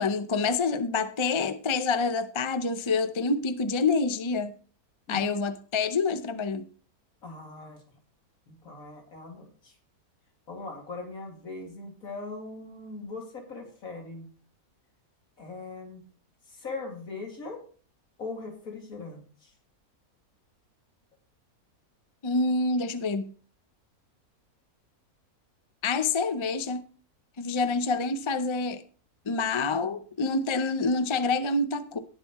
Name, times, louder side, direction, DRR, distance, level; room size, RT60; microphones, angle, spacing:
voice 1, 0.0-4.5 5.1-6.7 22.2-23.3 25.8-26.8 27.4-28.8 29.3-32.0, left 4 dB, 35° left, 0.4 m, -27 dB
voice 2, 7.2-7.8 8.5-9.7 10.5-14.3 15.4-16.0 16.5-17.6 18.2-19.5, left 3 dB, 60° left, 2.9 m, -40 dB
18.5 x 7.2 x 3.0 m
omnidirectional pair, 1.6 m